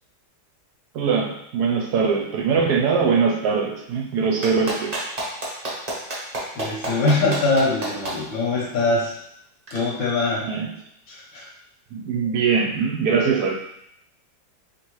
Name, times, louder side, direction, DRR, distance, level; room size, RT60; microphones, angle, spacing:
voice 1, 0.9-5.0 10.5-10.7 11.9-13.5, right 5 dB, 70° right, 1 dB, 1.1 m, -22 dB
Clapping, 4.4-8.1 9.7-9.8, right 2 dB, 40° right, 0.6 m, -28 dB
voice 2, 6.5-9.1 9.7-10.5 11.1-11.5, left 3 dB, 80° left, -5 dB, 1.6 m, -22 dB
4.2 x 3.3 x 3.1 m, 0.77 s
omnidirectional pair, 2.0 m